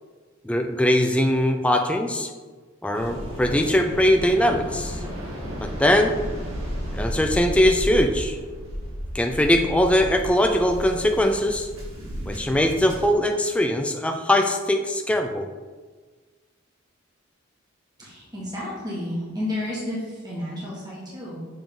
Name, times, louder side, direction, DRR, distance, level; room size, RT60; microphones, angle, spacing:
voice 1, 0.4-2.3 2.8-5.0 5.6-6.1 6.9-8.4 9.1-11.7 12.3-15.5, left 1 dB, 5° left, 4 dB, 0.3 m, -21 dB
Waves surf, 2.9-13.1, equal, 80° right, 1.6 m, -33 dB
voice 2, 18.0-21.4, left 1 dB, 20° right, -7 dB, 1.5 m, -31 dB
7.0 x 3.6 x 3.8 m, 1.4 s
head